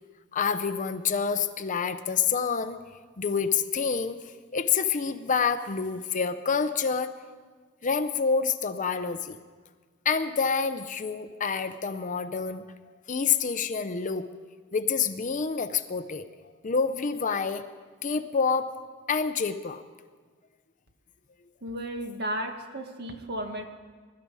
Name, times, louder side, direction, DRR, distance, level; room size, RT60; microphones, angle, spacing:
voice 1, 0.3-2.8 3.2-4.2 4.5-7.1 7.8-9.4 10.1-12.6 13.1-14.3 14.7-16.3 16.6-17.6 18.0-18.7 19.1-19.8, left 6 dB, 40° left, 10 dB, 0.6 m, -27 dB
voice 2, 21.6-23.6, right 1 dB, 50° right, 5 dB, 1.5 m, -34 dB
21.5 x 12.5 x 4.8 m, 1.5 s
head